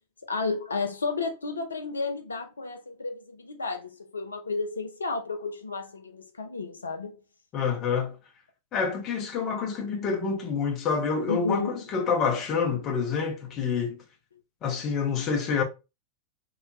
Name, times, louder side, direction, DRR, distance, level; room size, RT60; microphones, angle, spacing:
voice 1, 0.2-7.2 11.3-11.7, left 4 dB, 75° left, 0.3 m, -32 dB
voice 2, 7.5-8.2 8.7-14.0 14.6-15.6, left 5 dB, 35° left, 0.6 m, -27 dB
2.9 x 2.0 x 2.6 m
figure-of-eight pair, 90°, 0 cm